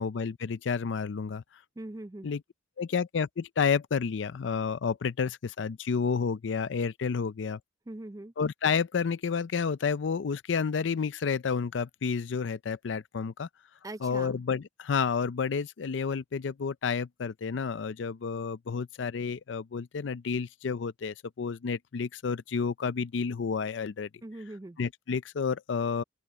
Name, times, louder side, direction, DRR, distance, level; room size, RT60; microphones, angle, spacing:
voice 1, 0.0-1.4 2.2-2.4 2.8-7.6 8.4-13.5 14.0-24.1 24.8-26.0, left 5 dB, 80° left, 0.5 m, -30 dB
voice 2, 1.8-2.3 7.9-8.3 13.8-14.4 24.2-24.8, right 1 dB, 20° right, 0.4 m, -41 dB
open air
head